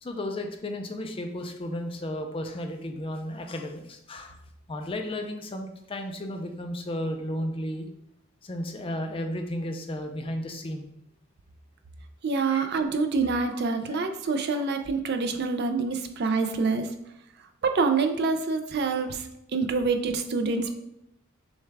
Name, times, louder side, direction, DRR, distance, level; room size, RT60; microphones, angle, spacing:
voice 1, 0.0-4.3 4.7-7.9 8.4-10.9 12.5-12.7 13.5-13.6 13.9-14.0 14.5-14.6 16.4-16.5 19.0-19.1, left 1 dB, 25° left, 5 dB, 0.4 m, -34 dB
voice 2, 12.2-16.9 17.6-20.7, right 4 dB, 50° right, 6 dB, 0.4 m, -26 dB
6.3 x 2.3 x 3.4 m, 0.80 s
head